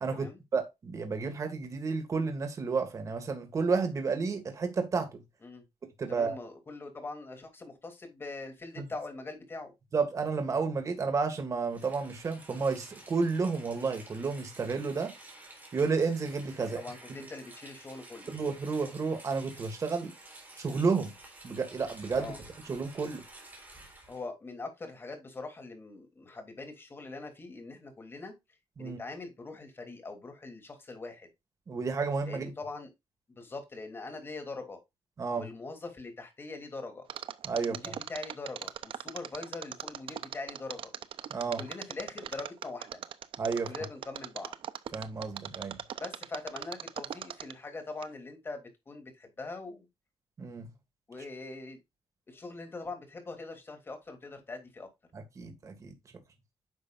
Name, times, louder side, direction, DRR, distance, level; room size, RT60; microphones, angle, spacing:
voice 1, 0.0-5.2 6.0-6.4 9.9-15.1 15.7-16.8 18.3-20.1 20.6-21.1 21.4-22.3 22.7-23.2 28.8-29.0 31.7-32.5 35.2-35.4 37.4-37.9 41.3-41.6 43.4-43.7 44.9-45.8 50.4-50.7 55.4-55.9, right 4 dB, 35° right, 1.9 m, -31 dB
voice 2, 6.1-9.7 16.6-18.3 22.1-22.4 24.1-28.3 28.8-31.3 32.3-32.9 33.3-34.8 35.4-37.1 37.5-40.9 41.6-43.0 43.7-44.5 46.0-49.9 51.1-51.8 52.3-54.9, left 3 dB, 25° left, 2.9 m, -42 dB
Rain, 11.6-24.2, right 2 dB, 20° right, 3.7 m, -51 dB
Mechanisms, 37.1-47.7 48.0-48.1, right 10 dB, 65° right, 0.7 m, -39 dB
9.9 x 6.4 x 2.5 m
wide cardioid pair, 165°, 10 cm